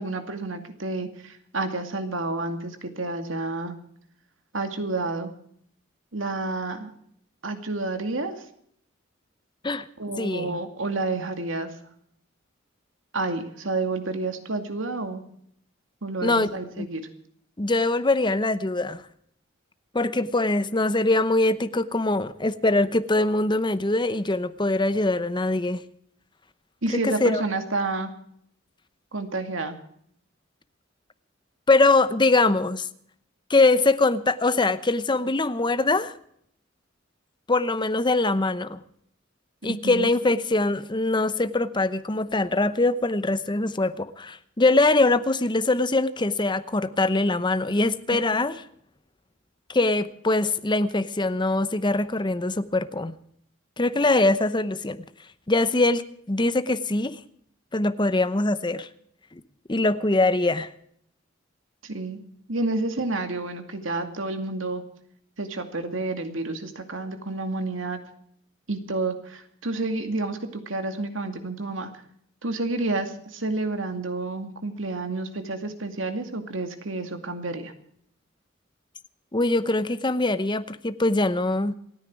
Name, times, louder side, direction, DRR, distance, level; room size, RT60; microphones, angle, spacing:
voice 1, 0.0-3.7 4.5-5.3 6.1-6.9 7.4-8.3 10.0-11.7 13.1-15.2 16.0-17.0 26.8-28.1 29.1-29.8 39.8-40.1 61.8-62.2 62.5-64.8 65.4-68.0 68.7-71.9 72.4-77.7, right 2 dB, 80° right, 7 dB, 2.3 m, -29 dB
voice 2, 10.2-10.6 16.2-16.5 16.8-16.9 17.6-19.0 19.9-25.8 27.0-27.4 31.7-32.9 33.5-36.1 37.5-38.8 39.6-48.6 49.7-53.1 53.8-55.0 55.5-57.2 57.7-58.9 59.7-60.7 79.3-81.7, left 2 dB, 25° left, 13 dB, 0.9 m, -23 dB
28.0 x 9.9 x 4.7 m, 0.68 s
head